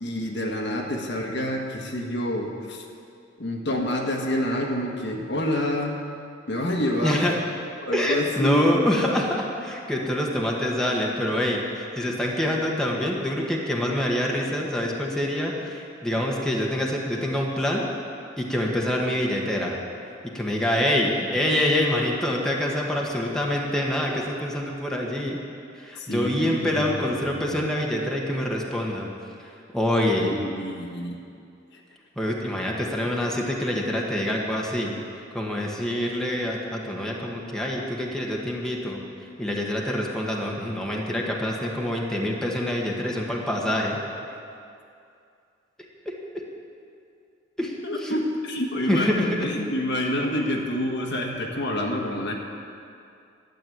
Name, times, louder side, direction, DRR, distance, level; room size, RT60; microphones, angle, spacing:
voice 1, 0.0-2.8 3.4-6.0 6.5-7.3 7.8-8.9 26.0-27.6 30.2-31.2 47.8-52.3, left 1 dB, 65° left, 0 dB, 1.7 m, -28 dB
voice 2, 7.0-7.4 7.9-17.8 18.4-19.8 20.3-25.4 25.8-29.1 29.7-30.4 32.2-34.9 35.3-39.0 39.4-44.0 46.0-46.1 47.6-47.8 48.0-48.2 48.9-49.4 52.1-52.2, left 1 dB, 5° left, -2 dB, 1.5 m, -26 dB
12.0 x 8.0 x 9.3 m, 2.5 s
head